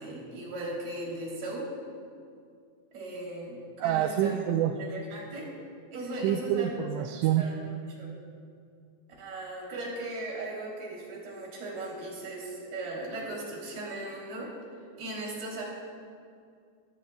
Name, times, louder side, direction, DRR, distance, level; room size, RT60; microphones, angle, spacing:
voice 1, 0.0-1.7 2.9-4.4 4.7-5.5 5.9-6.7 7.4-7.7 8.0-8.1 9.2-14.5 15.0-15.6, right 2 dB, 55° right, -4 dB, 4.8 m, -37 dB
voice 2, 3.8-4.7 6.2-7.4, right 11 dB, 85° right, 6 dB, 3.0 m, -27 dB
21.0 x 15.0 x 2.3 m, 2.3 s
omnidirectional pair, 5.6 m